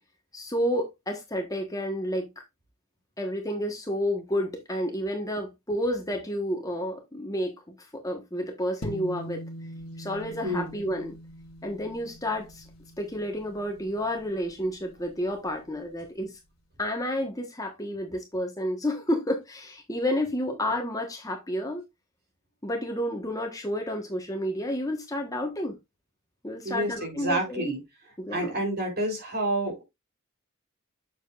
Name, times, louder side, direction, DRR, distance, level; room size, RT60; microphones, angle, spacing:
voice 1, 0.3-2.3 3.2-9.4 10.0-11.2 11.6-12.7 13.0-16.4 16.8-21.8 22.6-25.7 26.4-27.7 28.2-28.6, equal, 15° left, 1.3 m, -30 dB
sound 1, 8.8-15.4, equal, 75° left, 1.8 m, -43 dB
voice 2, 10.4-10.7 26.6-27.8 28.3-29.8, right 1 dB, 45° right, 3.7 m, -29 dB
7.5 x 7.2 x 2.5 m
head